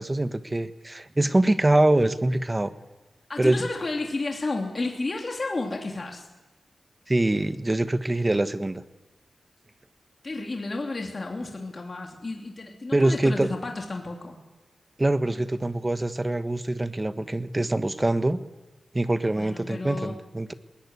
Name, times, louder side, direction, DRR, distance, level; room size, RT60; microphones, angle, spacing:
voice 1, 0.0-2.7 3.4-3.6 7.1-8.8 12.9-13.5 15.0-18.4 18.9-20.5, right 1 dB, 25° right, 11 dB, 1.3 m, -24 dB
voice 2, 3.3-6.3 10.2-14.4 19.2-20.2, left 2 dB, 40° left, 2 dB, 3.2 m, -32 dB
20.5 x 18.0 x 9.6 m, 1.1 s
cardioid pair, 65°, 0 cm